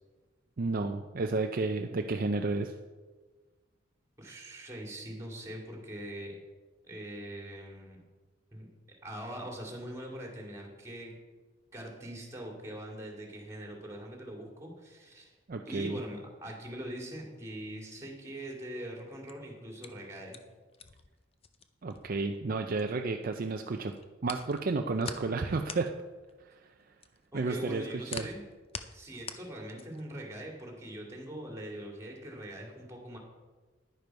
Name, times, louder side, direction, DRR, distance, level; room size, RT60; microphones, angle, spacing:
voice 1, 0.6-2.7 15.5-16.0 21.8-23.9 24.2-25.9 26.5-26.6 27.3-27.8 28.1-28.3, right 3 dB, 45° right, 4 dB, 0.5 m, -31 dB
voice 2, 4.2-6.4 6.8-8.0 8.5-8.7 9.0-11.1 11.7-15.3 15.6-20.4 27.3-28.4 28.9-33.2, right 1 dB, 15° right, 0 dB, 2.3 m, -42 dB
sound 1, 19.1-23.3 23.6-30.1, left 6 dB, 30° left, 0.6 m, -45 dB
10.5 x 10.5 x 4.6 m, 1.3 s
head